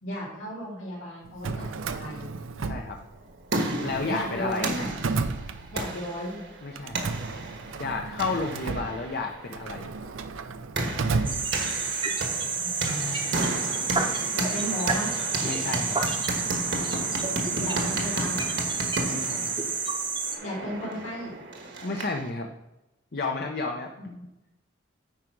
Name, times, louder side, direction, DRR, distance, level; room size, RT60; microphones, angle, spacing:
voice 1, 0.0-2.3 4.0-4.9 5.7-6.4 12.1-13.8 14.3-15.1 17.5-18.4 20.4-21.3 24.0-24.1, equal, 70° left, -6 dB, 3.3 m, -35 dB
Drawer open or close, 1.3-3.4 3.7-6.1 6.8-12.0, right 4 dB, 85° right, 0.5 m, -33 dB
voice 2, 2.6-3.0 3.8-4.7 6.6-7.1 7.8-9.9 11.9-12.1 15.4-16.0 19.1-19.6 21.8-22.5 23.1-24.3, left 3 dB, 55° left, 3 dB, 0.7 m, -32 dB
sound 1, 3.1-22.3, right 2 dB, 65° right, 1.3 m, -33 dB
sound 2, 11.2-20.4, right 4 dB, 25° right, 0.8 m, -29 dB
9.1 x 4.9 x 4.6 m, 0.94 s
head